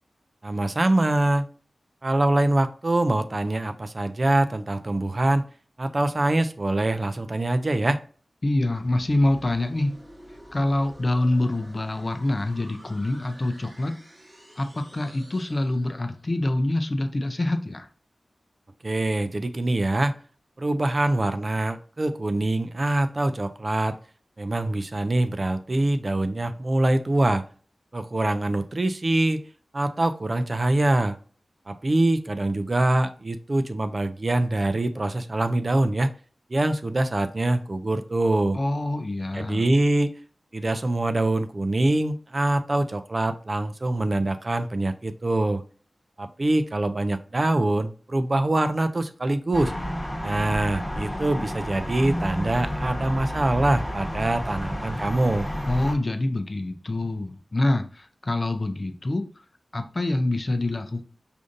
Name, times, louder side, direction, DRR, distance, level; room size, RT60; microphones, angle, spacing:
voice 1, 0.4-1.5 2.0-5.4 5.8-8.0 18.8-20.2 20.6-24.0 24.4-27.4 27.9-29.4 29.7-31.2 31.7-36.1 36.5-38.6 39.3-40.1 40.5-45.6 46.2-49.7 50.2-55.5, right 2 dB, 40° right, 9 dB, 0.3 m, -24 dB
voice 2, 8.4-10.0 10.5-13.9 14.6-17.9 38.5-39.6 55.7-59.3 59.7-61.0, left 1 dB, 40° left, 7 dB, 0.4 m, -25 dB
sound 1, 8.5-16.4, right 1 dB, 25° right, 1.1 m, -49 dB
sound 2, 49.5-55.9, equal, 15° left, 1.1 m, -31 dB
5.0 x 2.6 x 2.5 m, 0.41 s
wide cardioid pair, 85°, 0 cm